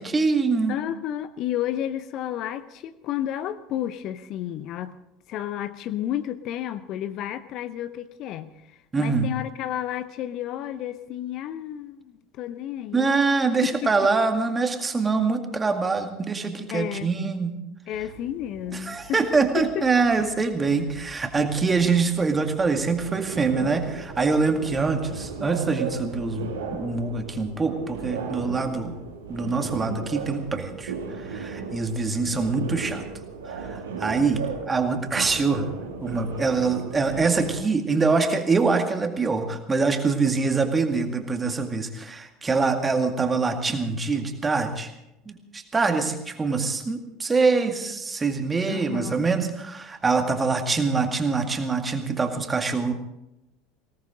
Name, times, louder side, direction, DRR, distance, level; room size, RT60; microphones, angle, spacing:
voice 1, 0.0-0.8 8.9-9.3 12.9-17.5 18.8-28.9 29.3-33.0 33.5-35.7 36.0-44.9 45.3-52.9, right 4 dB, 20° right, 5 dB, 2.1 m, -24 dB
voice 2, 0.7-5.0 5.3-8.5 9.0-13.1 13.6-13.9 16.7-17.1 17.9-19.3 19.6-19.9 20.2-20.3 48.7-49.2, left 11 dB, 45° left, 13 dB, 0.7 m, -31 dB
sound 1, 17.9-37.6, right 5 dB, 70° right, 2.2 m, -37 dB
20.0 x 17.5 x 3.9 m, 0.90 s
figure-of-eight pair, 70°, 0 cm